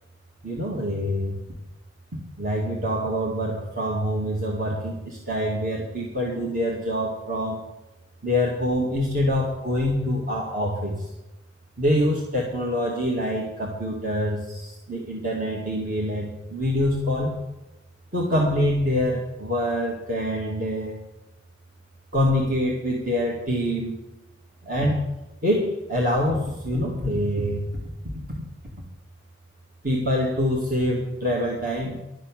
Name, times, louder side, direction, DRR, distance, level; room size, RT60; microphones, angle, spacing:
voice 1, 0.4-1.4 2.4-7.6 8.2-11.1 11.8-17.3 18.1-21.0 22.1-23.9 24.6-25.0 25.4-27.7 28.0-28.1 29.8-32.0, equal, 45° right, -2 dB, 2.3 m, -25 dB
12.5 x 7.5 x 9.0 m, 0.96 s
head